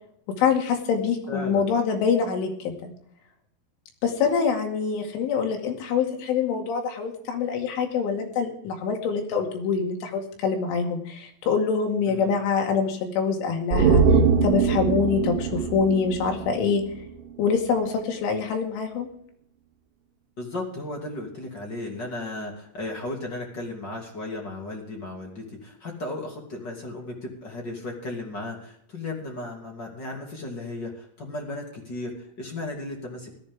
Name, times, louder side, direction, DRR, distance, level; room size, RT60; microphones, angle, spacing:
voice 1, 0.3-2.9 4.0-16.9 17.4-19.1, left 5 dB, 70° left, 2 dB, 4.5 m, -25 dB
voice 2, 1.3-1.6 12.1-12.3 20.4-33.3, left 2 dB, 30° left, 0 dB, 2.1 m, -35 dB
sound 1, 13.7-17.1 17.4-17.5, right 5 dB, 75° right, 3.4 m, -22 dB
18.0 x 13.0 x 3.7 m, 0.68 s
omnidirectional pair, 5.9 m